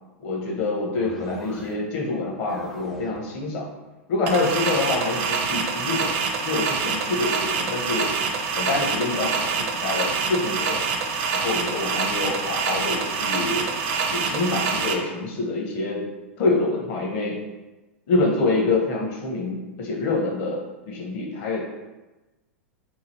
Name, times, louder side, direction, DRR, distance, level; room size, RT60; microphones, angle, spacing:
voice 1, 0.2-3.7 4.1-6.1 6.4-8.1 8.5-10.8 11.3-16.0 16.4-17.4 18.1-21.7, left 3 dB, 50° left, -1 dB, 0.9 m, -26 dB
sound 1, 1.0-2.0 2.3-3.4, equal, 5° left, 0.4 m, -41 dB
sound 2, 4.3-14.9, right 5 dB, 55° right, 0.5 m, -26 dB
2.9 x 2.4 x 3.0 m, 1.1 s
hypercardioid pair, 105°, 7 cm